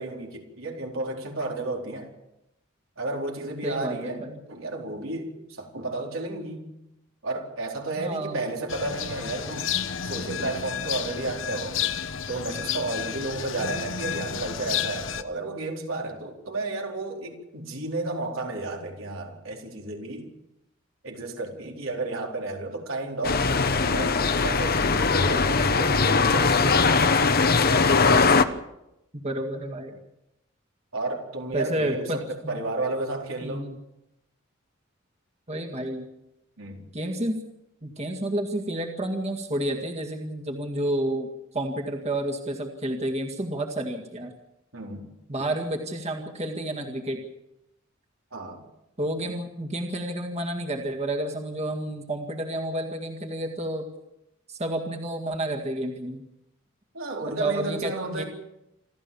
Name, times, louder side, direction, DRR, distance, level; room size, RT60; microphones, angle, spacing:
voice 1, 0.0-2.1 3.0-6.7 7.2-9.7 10.0-11.8 12.3-20.3 21.0-23.5 23.8-27.8 30.9-33.7 36.6-36.9 44.7-45.1 48.3-48.6 56.9-58.2, right 2 dB, 85° right, 1 dB, 4.4 m, -32 dB
voice 2, 3.6-4.4 8.0-8.5 13.6-13.8 29.1-30.0 31.5-32.6 33.4-33.8 35.5-36.1 36.9-37.4 37.8-41.3 41.5-44.3 45.3-47.2 49.0-53.9 54.5-56.2 57.4-58.2, right 1 dB, 30° right, 2 dB, 2.0 m, -30 dB
sound 1, 8.7-15.2, left 8 dB, 70° left, 1.2 m, -31 dB
sound 2, 23.2-28.5, left 4 dB, 50° left, 1.0 m, -20 dB
27.5 x 13.5 x 7.1 m, 0.87 s
head